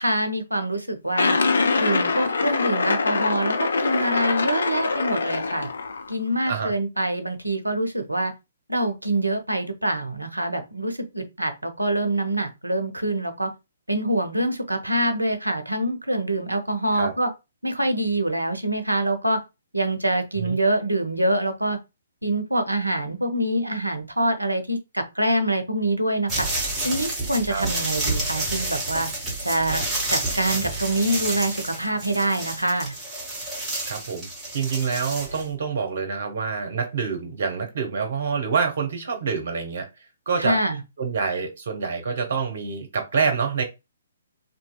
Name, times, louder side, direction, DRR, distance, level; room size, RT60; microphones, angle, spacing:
voice 1, 0.0-1.4 1.8-5.7 6.1-8.3 8.7-13.5 13.9-17.3 17.6-19.4 19.7-21.8 22.2-26.5 26.8-29.1 29.4-29.8 30.1-32.9 40.4-40.8, right 1 dB, 85° right, 0.6 m, -25 dB
sound 1, 1.2-6.1, left 4 dB, 60° left, 0.4 m, -23 dB
sound 2, 26.3-35.5, right 2 dB, 5° right, 1.1 m, -29 dB
voice 2, 33.9-39.9 40.3-40.6 41.0-43.6, right 5 dB, 55° right, 0.8 m, -26 dB
2.7 x 2.6 x 2.2 m
figure-of-eight pair, 130°, 0 cm